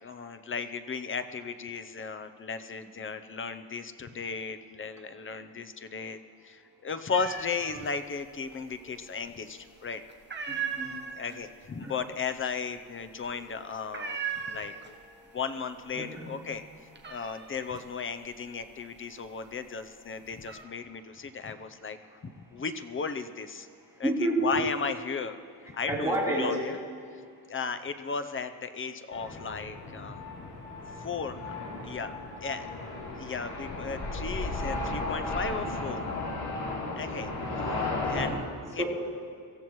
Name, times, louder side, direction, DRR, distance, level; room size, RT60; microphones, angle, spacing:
voice 1, 0.0-10.0 11.2-15.0 15.3-23.7 24.0-25.4 25.6-26.8 27.1-27.2 27.5-30.5 31.0-31.6 31.8-32.1 32.4-32.7 33.2-36.1 36.9-38.8, left 5 dB, 30° left, 10 dB, 0.7 m, -36 dB
sound 1, 7.1-7.9 8.2-9.0 9.4-9.7 10.1-15.2 15.5-16.1 16.4-19.5 20.0-20.6, right 7 dB, 25° right, 1.1 m, -38 dB
voice 2, 10.5-10.9 11.8-11.9 13.8-15.4 15.9-16.3 17.0-17.2 24.0-24.5 25.9-26.6 38.8-38.9, right 1 dB, 10° right, -6 dB, 3.6 m, -31 dB
sound 2, 29.1-38.3, left 2 dB, 80° left, 3.4 m, -35 dB
24.0 x 15.0 x 3.1 m, 2.2 s
wide cardioid pair, 150°, 39 cm